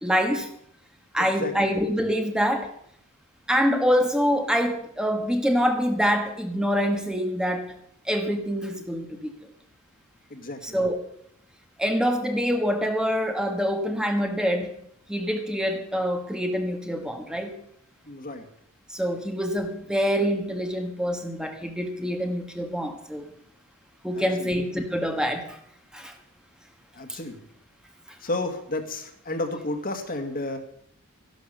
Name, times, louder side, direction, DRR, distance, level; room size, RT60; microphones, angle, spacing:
voice 1, 0.0-0.5 1.1-2.7 3.5-7.7 8.0-9.3 10.6-11.0 11.8-14.8 15.1-17.6 18.9-23.3 24.0-25.6 25.9-26.1 27.1-27.2, equal, 5° right, 4 dB, 1.6 m, -25 dB
voice 2, 1.2-1.5 10.3-10.8 18.1-18.5 24.1-24.5 26.9-27.4 28.2-30.6, left 2 dB, 45° left, 6 dB, 2.0 m, -32 dB
13.5 x 11.5 x 6.8 m, 0.69 s
head